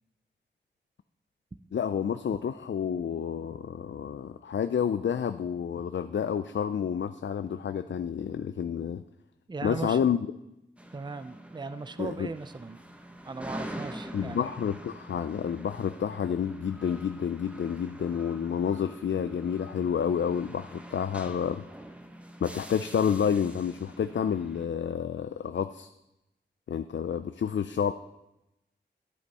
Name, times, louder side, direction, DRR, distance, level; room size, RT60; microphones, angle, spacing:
voice 1, 1.7-9.0 9.6-10.3 12.0-12.3 14.1-21.7 22.4-25.9 26.7-27.9, left 7 dB, 75° left, 11 dB, 0.4 m, -29 dB
voice 2, 9.5-10.1 10.9-12.8 13.2-14.5, right 3 dB, 25° right, 12 dB, 0.5 m, -38 dB
sound 1, 10.8-24.7, right 1 dB, 5° right, 1.0 m, -45 dB
11.0 x 9.7 x 4.2 m, 0.90 s
wide cardioid pair, 95°, 19 cm